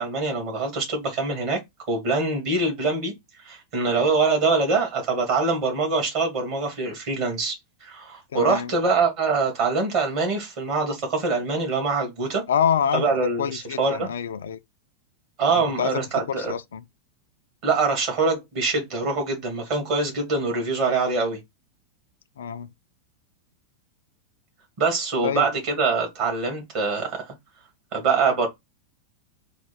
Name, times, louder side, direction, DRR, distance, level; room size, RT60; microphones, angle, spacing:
voice 1, 0.0-1.6 1.9-3.1 3.4-12.4 12.9-14.1 15.4-16.5 17.6-21.4 24.8-27.3 27.9-28.5, right 4 dB, 45° right, 2.3 m, -24 dB
voice 2, 8.3-8.7 12.5-13.1 13.4-14.6 15.5-16.0 16.3-16.8 22.4-22.7 25.2-25.5, left 8 dB, 65° left, 0.3 m, -26 dB
4.3 x 2.3 x 4.6 m
figure-of-eight pair, 90°, 0 cm